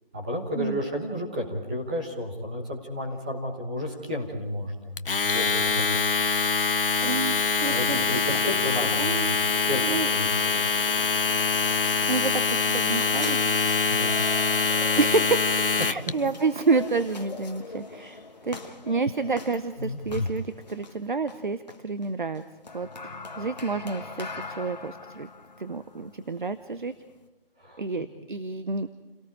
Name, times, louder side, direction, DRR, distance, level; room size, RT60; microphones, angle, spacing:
voice 1, 0.1-5.9 7.6-9.3 9.6-9.8 10.1-10.7 13.9-14.6 19.8-20.0 27.6-28.1, equal, 10° right, -3 dB, 1.2 m, -32 dB
Domestic sounds home sounds, 5.0-16.1, left 5 dB, 65° left, 0.8 m, -24 dB
voice 2, 7.0-8.0 9.0-9.4 9.8-10.1 12.1-13.4 15.0-15.5 15.7-22.4 22.7-25.3 25.6-26.9 27.8-28.9, right 4 dB, 55° right, 11 dB, 0.9 m, -29 dB
sound 1, 8.3-27.3, left 3 dB, 45° left, 1.5 m, -41 dB
29.5 x 18.0 x 4.9 m, 1.1 s
figure-of-eight pair, 175°, 30 cm